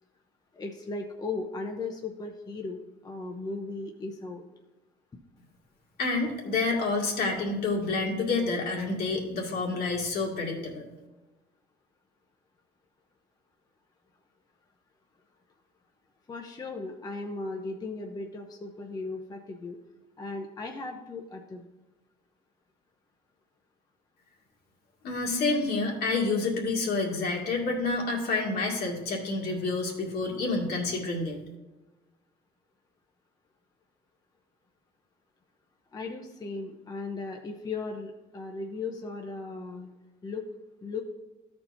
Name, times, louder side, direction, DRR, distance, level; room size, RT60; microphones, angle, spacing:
voice 1, 0.5-4.4 16.3-19.8 20.2-21.7 35.9-39.9 40.2-40.5 40.8-41.0, left 3 dB, 20° left, 3 dB, 0.7 m, -37 dB
voice 2, 6.0-10.8 25.0-31.4, left 3 dB, 65° left, -1 dB, 2.1 m, -28 dB
13.0 x 4.4 x 4.1 m, 1.1 s
cardioid pair, 110°, 17 cm